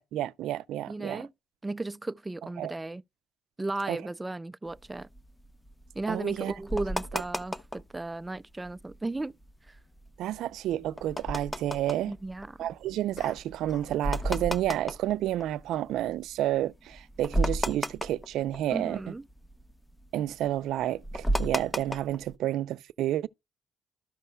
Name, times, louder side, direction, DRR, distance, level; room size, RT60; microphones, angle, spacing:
voice 1, 0.0-1.2 2.6-2.7 3.9-4.0 6.1-6.5 7.1-7.2 10.2-12.1 12.6-19.0 20.1-23.3, right 13 dB, 85° right, 0.4 m, -30 dB
voice 2, 0.9-1.3 1.6-3.0 3.6-5.1 5.9-9.3 9.7-9.8 12.1-12.7 18.7-19.3, right 2 dB, 15° right, 0.4 m, -35 dB
sound 1, 4.7-8.0 8.4-8.5 8.6-9.0 9.4-16.1 16.6-16.7 16.9-19.0 19.3-22.3, equal, 15° left, 0.7 m, -33 dB
sound 2, 13.2-14.0 14.3-14.6, left 4 dB, 45° left, 1.2 m, -51 dB
13.5 x 5.5 x 2.2 m
cardioid pair, 90°, 0 cm